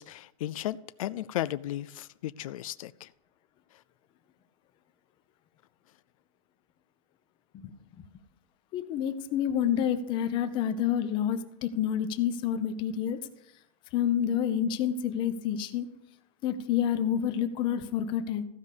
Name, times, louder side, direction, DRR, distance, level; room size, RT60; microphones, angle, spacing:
voice 1, 0.0-3.1 3.7-3.8, left 13 dB, 85° left, 0.4 m, -35 dB
voice 2, 8.7-13.2 13.9-15.9 16.4-18.4, left 9 dB, 30° left, 0.8 m, -28 dB
15.0 x 5.2 x 6.7 m
supercardioid pair, 170°, 17 cm